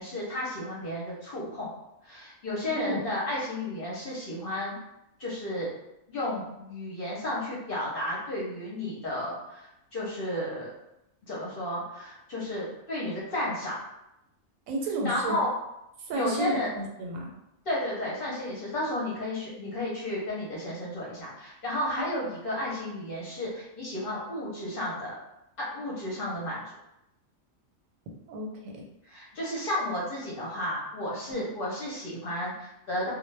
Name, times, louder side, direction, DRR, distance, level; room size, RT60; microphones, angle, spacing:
voice 1, 0.0-1.7 2.0-4.7 5.2-5.7 6.1-10.7 11.2-13.8 15.0-15.5 16.1-16.7 17.7-25.1 25.6-26.6 29.1-33.1, left 1 dB, 55° left, -5 dB, 0.7 m, -32 dB
voice 2, 2.6-3.0 14.7-15.4 16.0-17.3 22.0-22.1 28.3-28.8 31.3-31.4, right 1 dB, 85° right, 0 dB, 1.0 m, -32 dB
2.2 x 2.0 x 3.1 m, 0.85 s
omnidirectional pair, 1.4 m